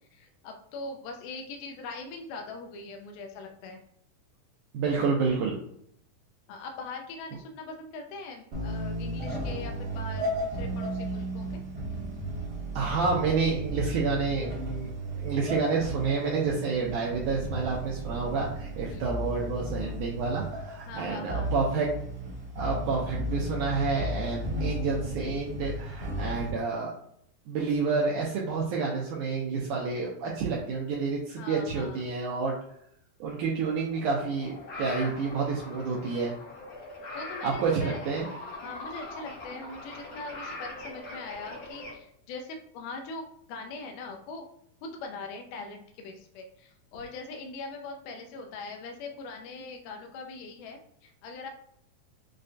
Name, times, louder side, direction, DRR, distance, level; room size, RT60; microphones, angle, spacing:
voice 1, 0.1-3.8 6.5-11.6 18.9-19.1 20.9-21.5 31.4-32.1 37.1-38.0 38.6-44.5 44.8-51.5, left 3 dB, 80° left, 3 dB, 1.9 m, -41 dB
voice 2, 4.7-5.6 12.8-14.9 15.2-21.9 22.6-26.9 27.5-32.6 33.2-36.4 37.4-38.3, right 4 dB, 80° right, -3 dB, 1.8 m, -29 dB
sound 1, 8.5-26.5, right 1 dB, 65° right, 1.0 m, -34 dB
sound 2, 33.9-42.0, left 2 dB, 65° left, 1.6 m, -42 dB
6.4 x 2.2 x 2.6 m, 0.69 s
omnidirectional pair, 4.1 m